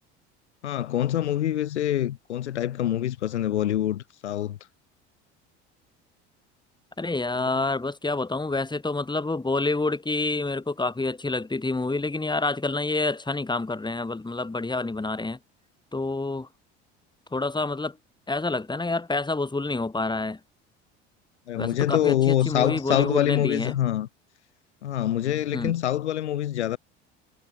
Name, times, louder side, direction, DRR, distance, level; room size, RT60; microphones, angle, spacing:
voice 1, 0.6-4.6 7.4-7.5 21.5-24.1 24.8-26.8, left 12 dB, 90° left, 7.2 m, -25 dB
voice 2, 7.0-15.4 15.9-16.5 17.3-18.0 18.3-20.4 21.6-23.8 25.5-25.7, left 3 dB, 15° left, 4.8 m, -28 dB
hypercardioid pair, 75°, 33 cm